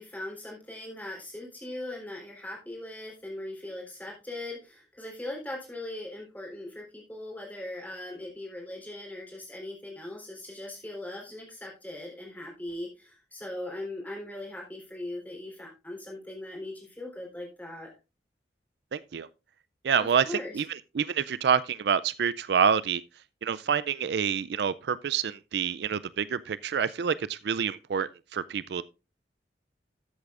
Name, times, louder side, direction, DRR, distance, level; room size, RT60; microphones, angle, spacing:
voice 1, 0.0-17.9 20.0-20.6, left 1 dB, 10° left, 3.8 m, -40 dB
voice 2, 18.9-19.3 19.8-23.0 23.4-28.8, right 7 dB, 65° right, 0.4 m, -27 dB
13.5 x 8.1 x 2.5 m
head